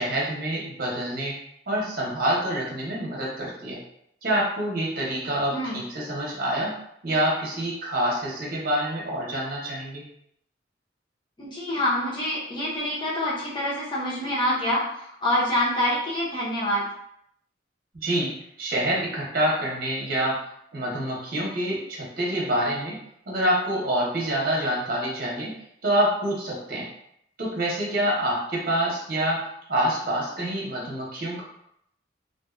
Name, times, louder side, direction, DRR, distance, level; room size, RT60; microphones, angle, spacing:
voice 1, 0.0-1.4 1.7-3.8 4.2-6.7 7.0-10.0 17.9-20.4 20.7-23.0 23.3-25.5 25.8-26.9 27.4-29.4 29.7-31.4, right 1 dB, 50° right, -4 dB, 0.8 m, -26 dB
voice 2, 5.5-5.8 11.4-16.8, left 1 dB, 25° left, -7 dB, 0.8 m, -26 dB
2.5 x 2.3 x 2.4 m, 0.73 s
head